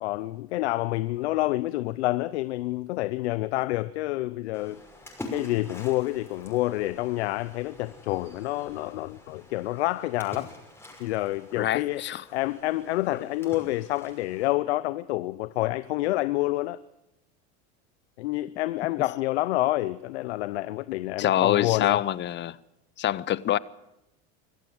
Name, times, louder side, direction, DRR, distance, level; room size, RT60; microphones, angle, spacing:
voice 1, 0.0-4.8 5.3-10.5 11.0-12.0 12.3-16.8 18.2-22.0, left 17 dB, 90° left, 0.7 m, -28 dB
Splash splatter, 4.5-14.5, left 1 dB, 5° left, 6.0 m, -46 dB
voice 2, 11.6-12.2 13.1-13.2 21.2-22.6 23.0-23.6, left 12 dB, 35° left, 0.8 m, -25 dB
25.0 x 14.5 x 7.9 m
supercardioid pair, 110°, 32 cm